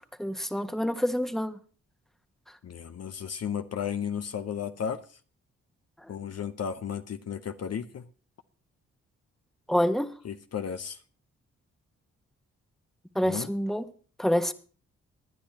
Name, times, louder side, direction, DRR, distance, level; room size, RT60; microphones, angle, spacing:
voice 1, 0.2-1.6 9.7-10.1 13.1-13.8 14.2-14.5, equal, ahead, 1.2 m, -27 dB
voice 2, 2.6-5.2 6.1-8.1 10.2-11.0 13.2-13.5, left 7 dB, 55° left, 0.8 m, -34 dB
19.0 x 10.0 x 2.9 m
supercardioid pair, 50°, 31 cm